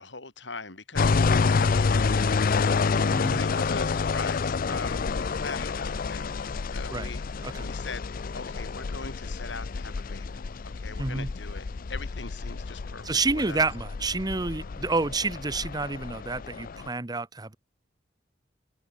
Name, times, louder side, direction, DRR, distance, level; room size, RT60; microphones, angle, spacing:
voice 1, 0.0-6.4 6.6-7.2 7.6-8.1 8.3-13.7, left 3 dB, 80° left, 7.2 m, -41 dB
sound 1, 1.0-16.9, left 4 dB, 50° left, 0.5 m, -28 dB
voice 2, 3.1-3.4 6.9-7.1 7.4-7.7 11.0-11.3 13.0-17.6, right 3 dB, 20° right, 0.9 m, -29 dB
head